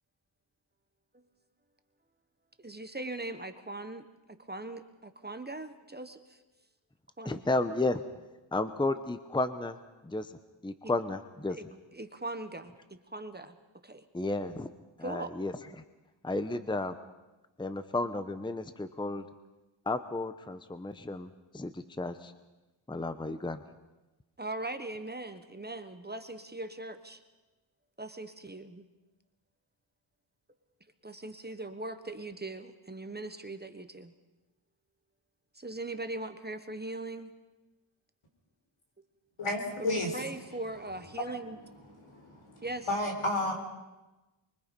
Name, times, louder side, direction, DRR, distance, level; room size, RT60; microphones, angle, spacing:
voice 1, 2.6-6.4 7.2-7.4 10.8-10.9 11.5-11.6 11.9-13.6 13.8-14.0 15.0-15.3 24.4-27.2 28.0-28.8 31.0-34.1 35.5-37.3 39.8-41.6 42.6-42.9, right 2 dB, 20° right, 8 dB, 1.2 m, -40 dB
voice 2, 7.2-8.0 8.5-9.8 10.0-10.3 10.6-11.6 14.1-14.7 15.0-15.5 16.2-16.9 17.6-19.2 19.9-22.3 22.9-23.6, left 2 dB, 10° left, 11 dB, 0.8 m, -32 dB
voice 3, 39.4-40.2 41.9-43.5, left 1 dB, 75° left, 3 dB, 4.3 m, -32 dB
24.5 x 23.5 x 5.3 m, 1.1 s
wide cardioid pair, 110°, 49 cm